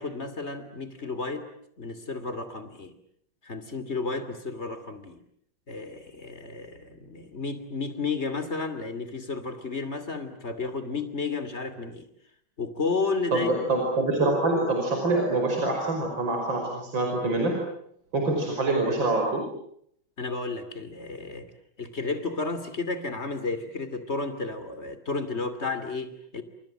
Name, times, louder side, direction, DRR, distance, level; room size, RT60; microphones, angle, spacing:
voice 1, 0.0-1.5 1.8-2.9 3.4-5.2 5.7-12.0 12.6-13.8 20.2-21.5 21.8-26.4, left 4 dB, 35° left, 11 dB, 3.0 m, -32 dB
voice 2, 13.3-17.5 18.1-19.5, right 2 dB, 70° right, 2 dB, 6.1 m, -25 dB
29.0 x 27.5 x 7.6 m, 0.70 s
omnidirectional pair, 2.2 m